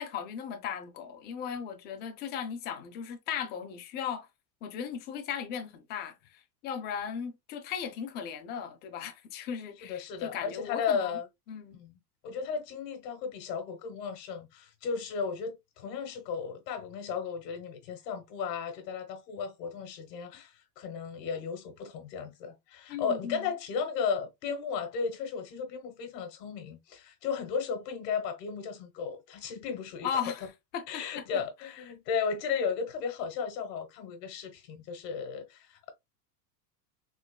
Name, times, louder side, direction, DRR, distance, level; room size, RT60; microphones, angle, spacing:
voice 1, 0.0-4.3 4.6-11.2 11.5-11.8 22.9-23.5 30.0-30.5 30.7-31.2, left 8 dB, 25° left, 0.3 m, -37 dB
voice 2, 9.9-11.3 11.7-12.0 12.2-30.1 30.9-35.9, left 6 dB, 75° left, 1.3 m, -35 dB
3.8 x 3.0 x 2.2 m
supercardioid pair, 130°, 50 cm